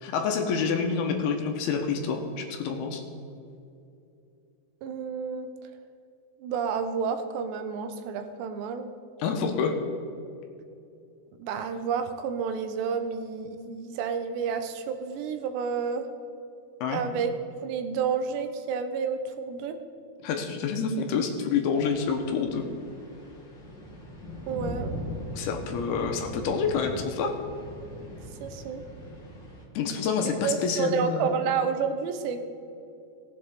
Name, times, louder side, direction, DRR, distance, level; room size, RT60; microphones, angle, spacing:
voice 1, 0.0-3.0 9.2-9.8 16.8-17.0 20.2-22.6 25.3-27.4 29.8-31.4, left 5 dB, 75° left, 4 dB, 2.7 m, -28 dB
voice 2, 4.8-5.5 6.4-8.9 11.4-16.1 16.9-17.3 17.6-19.8 24.5-24.9 28.4-28.8 30.2-32.4, right 6 dB, 85° right, 7 dB, 3.0 m, -30 dB
sound 1, 21.7-29.6, equal, 55° left, 1.3 m, -40 dB
19.0 x 7.6 x 3.7 m, 2.6 s
omnidirectional pair, 4.9 m